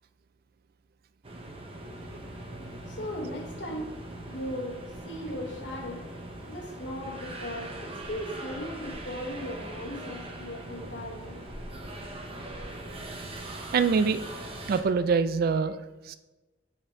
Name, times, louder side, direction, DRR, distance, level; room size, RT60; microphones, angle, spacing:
sound 1, 1.2-14.8, right 2 dB, 35° right, 0.8 m, -41 dB
sound 2, 1.8-15.2, left 4 dB, 25° left, 1.8 m, -51 dB
voice 1, 2.9-4.0 4.3-6.1 6.5-11.4, equal, 85° left, 2 dB, 1.1 m, -37 dB
voice 2, 13.7-14.2 14.7-15.8 16.1-16.2, right 5 dB, 55° right, 13 dB, 0.3 m, -25 dB
7.6 x 4.3 x 3.6 m, 1.1 s
head